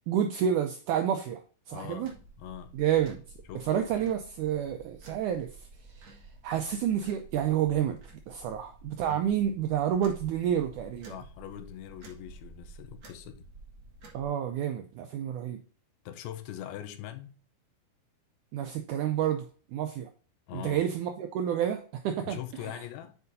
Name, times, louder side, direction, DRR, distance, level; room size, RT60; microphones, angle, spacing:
voice 1, 0.1-2.1 2.7-3.2 3.6-8.0 8.3-11.1 14.1-15.6 18.5-20.1 20.5-22.4 22.7-22.8, right 9 dB, 85° right, 1.7 m, -29 dB
voice 2, 1.7-2.1 2.4-2.8 3.5-3.9 9.1-9.2 11.1-13.5 16.1-17.4 20.5-20.9 22.3-23.2, left 11 dB, 85° left, 2.6 m, -42 dB
sound 1, 2.0-14.3, right 2 dB, 50° right, 1.4 m, -51 dB
8.1 x 4.7 x 2.6 m
omnidirectional pair, 4.2 m